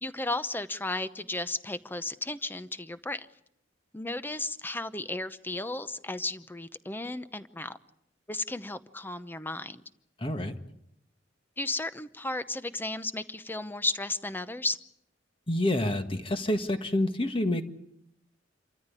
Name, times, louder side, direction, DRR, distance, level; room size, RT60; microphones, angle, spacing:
voice 1, 0.0-3.3 3.9-7.8 8.3-9.8 11.6-14.8, left 2 dB, 10° left, 13 dB, 0.8 m, -34 dB
voice 2, 10.2-10.5 15.5-17.7, left 1 dB, 30° left, 7 dB, 1.7 m, -28 dB
27.5 x 14.0 x 9.8 m, 0.77 s
head